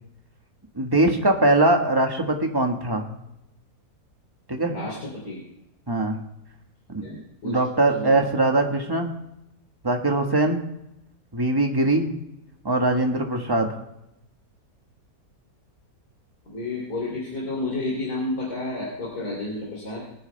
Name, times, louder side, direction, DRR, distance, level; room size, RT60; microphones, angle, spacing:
voice 1, 0.7-3.1 4.5-4.7 5.9-6.2 6.9-9.1 9.8-10.6 11.3-12.1 12.6-13.7, right 2 dB, 15° right, 3 dB, 1.3 m, -22 dB
voice 2, 4.7-5.4 7.0-7.2 7.4-8.1 16.5-20.0, left 2 dB, 65° left, -3 dB, 3.7 m, -31 dB
23.5 x 9.4 x 3.4 m, 0.86 s
omnidirectional pair, 1.8 m